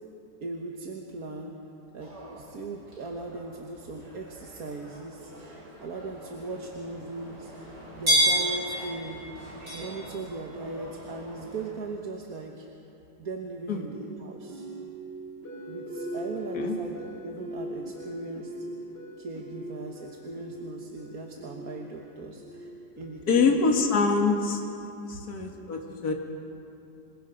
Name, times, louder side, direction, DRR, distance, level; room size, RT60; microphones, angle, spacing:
voice 1, 0.4-1.6 1.9-9.2 9.7-12.7 13.2-14.7 15.7-18.5 19.2-22.7 23.0-23.7 25.1-25.2, right 3 dB, 60° right, 1 dB, 1.8 m, -39 dB
sound 1, 2.0-11.7, equal, 90° right, 7.1 m, -33 dB
sound 2, 13.9-24.0, right 1 dB, 35° left, 3.8 m, -40 dB
voice 2, 23.3-24.6 25.1-26.1, left 4 dB, 60° left, 2 dB, 2.3 m, -24 dB
28.0 x 22.5 x 5.3 m, 2.7 s
omnidirectional pair, 1.8 m